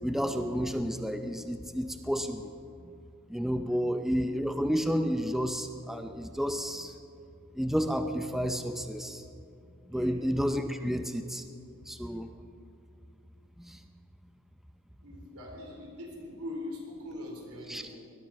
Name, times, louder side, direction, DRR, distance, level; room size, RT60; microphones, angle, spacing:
voice 1, 0.0-2.5 3.3-7.0 7.6-9.3 9.9-11.5 11.9-12.3 13.6-13.8 17.7-17.9, equal, ahead, 7 dB, 0.5 m, -31 dB
voice 2, 9.9-10.2 10.7-10.9 15.0-17.9, left 1 dB, 90° right, 0 dB, 3.9 m, -42 dB
19.5 x 12.0 x 5.9 m, 2.5 s
head